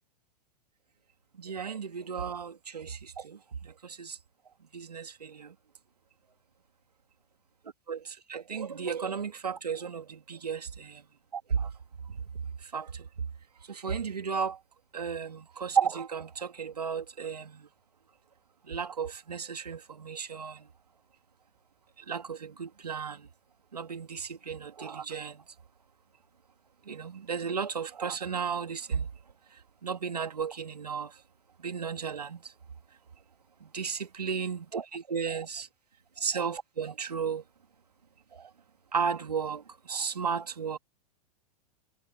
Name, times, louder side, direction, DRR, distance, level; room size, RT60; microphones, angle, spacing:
voice 1, 1.4-4.2 4.7-5.5 7.9-11.0 11.3-11.7 12.1-12.2 12.6-13.1 13.7-14.6 14.9-17.7 18.6-20.7 22.1-23.3 23.7-25.4 26.9-29.1 29.8-31.2 31.6-32.5 33.6-35.7 36.2-37.4 38.3-38.5 38.9-40.8, right 6 dB, 85° right, 2.2 m, -34 dB
hypercardioid pair, 100°, 20 cm